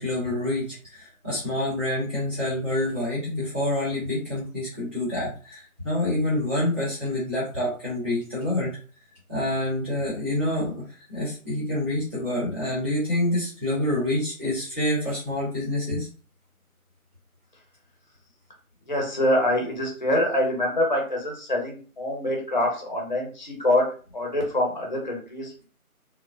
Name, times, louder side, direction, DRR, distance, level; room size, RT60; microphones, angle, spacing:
voice 1, 0.0-8.8 9.3-16.1, left 1 dB, 10° right, -15 dB, 1.0 m, -27 dB
voice 2, 18.9-23.8 24.1-25.6, left 1 dB, 30° left, -1 dB, 0.7 m, -25 dB
3.8 x 2.1 x 2.4 m, 0.39 s
figure-of-eight pair, 160°, 44 cm